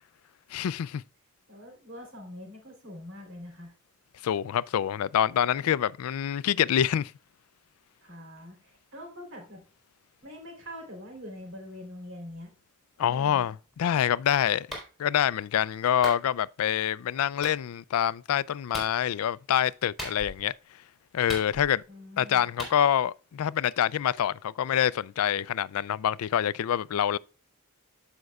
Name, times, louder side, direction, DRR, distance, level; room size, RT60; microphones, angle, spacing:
voice 1, 0.5-1.0 4.2-7.1 13.0-20.5 21.1-21.8 22.2-27.2, left 9 dB, 80° left, 0.3 m, -26 dB
voice 2, 1.5-3.7 8.0-9.6 10.2-12.5 13.1-13.5 21.9-22.5, left 1 dB, 60° right, 3.5 m, -44 dB
Clapping, 14.7-14.9 16.0-16.2 17.4-17.6 18.7-19.0 20.0-20.5 21.3-21.9 22.6-22.8, equal, ahead, 3.5 m, -37 dB
14.5 x 5.3 x 2.3 m
head